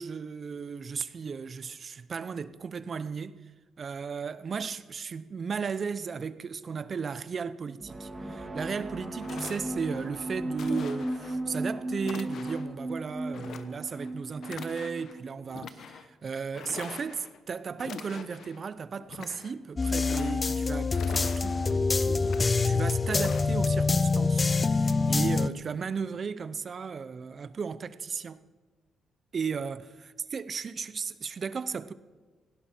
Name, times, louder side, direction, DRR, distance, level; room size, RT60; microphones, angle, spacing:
voice 1, 0.0-3.4 3.8-22.3 22.6-28.4 29.3-31.9, right 5 dB, 45° right, 0.7 m, -35 dB
sound 1, 7.8-15.4, right 1 dB, 20° right, 2.0 m, -35 dB
sound 2, 9.2-10.1 10.6-11.4 12.0-12.7 13.3-14.1 14.4-15.2 15.5-16.1 16.5-17.4 17.8-18.6 19.0-19.5 19.9-20.6 20.9-21.8 22.2-22.7 23.1-23.5, left 7 dB, 65° left, 1.0 m, -44 dB
sound 3, 19.8-25.5, left 4 dB, 30° left, 0.7 m, -25 dB
17.5 x 16.5 x 4.5 m
cardioid pair, 90°, 0 cm